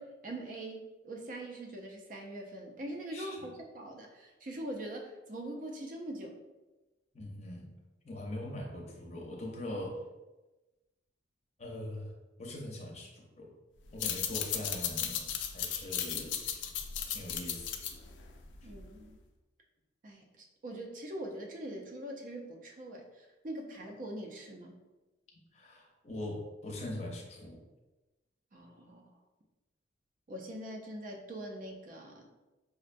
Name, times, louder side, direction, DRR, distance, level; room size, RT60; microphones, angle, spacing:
voice 1, 0.0-6.4 18.6-19.2 20.0-24.8 28.5-29.1 30.3-32.3, right 1 dB, 45° right, 1 dB, 0.4 m, -43 dB
voice 2, 3.1-3.5 7.1-7.7 8.0-10.0 11.6-12.1 12.4-13.5 13.9-15.3 15.5-16.6 17.0-17.7 25.5-27.6, left 1 dB, 35° left, -1 dB, 0.6 m, -42 dB
sound 1, 13.9-19.0, left 8 dB, 70° left, 0.4 m, -36 dB
5.0 x 2.1 x 2.5 m, 1.1 s
head